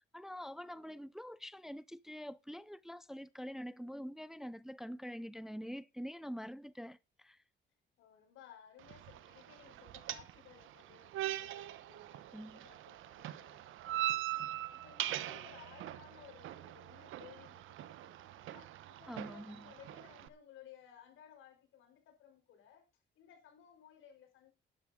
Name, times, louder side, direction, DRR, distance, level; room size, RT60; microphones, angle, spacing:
voice 1, 0.0-7.4 12.3-12.6 19.1-19.7, equal, ahead, 0.5 m, -45 dB
voice 2, 0.6-1.1 8.0-22.9 23.1-24.5, left 9 dB, 85° left, 5.1 m, -59 dB
sound 1, 8.8-20.3, right 14 dB, 85° right, 1.0 m, -42 dB
11.5 x 11.0 x 3.7 m
cardioid pair, 90°, 20 cm